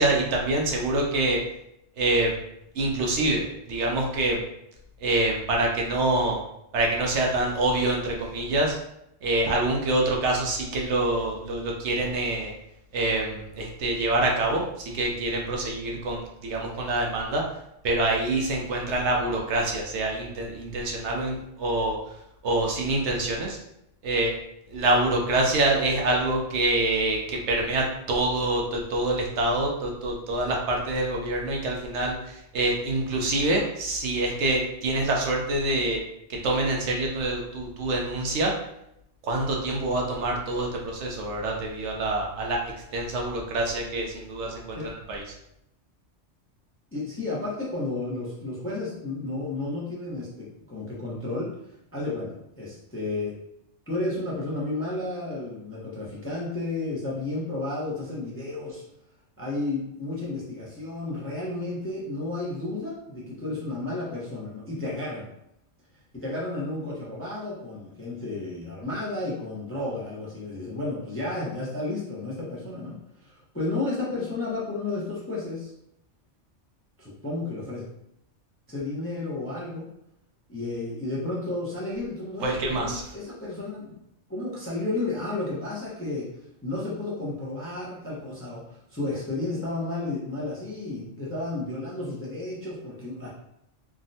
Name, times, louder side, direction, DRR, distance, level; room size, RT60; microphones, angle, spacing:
voice 1, 0.0-1.4 2.0-2.4 2.7-4.4 5.0-6.4 6.7-8.8 9.2-12.5 12.9-17.4 17.8-22.0 22.4-23.6 24.0-24.3 24.7-36.0 36.3-38.5 39.2-42.6 42.9-45.2 82.4-83.0, right 2 dB, 70° right, 0 dB, 0.9 m, -26 dB
voice 2, 46.9-51.5 51.9-53.3 53.9-58.8 59.4-65.3 66.1-75.7 77.0-77.8 78.7-79.9 80.5-84.0 84.3-86.3 86.6-93.3, left 2 dB, 15° left, -6 dB, 0.5 m, -32 dB
3.4 x 2.1 x 2.6 m, 0.80 s
omnidirectional pair, 1.3 m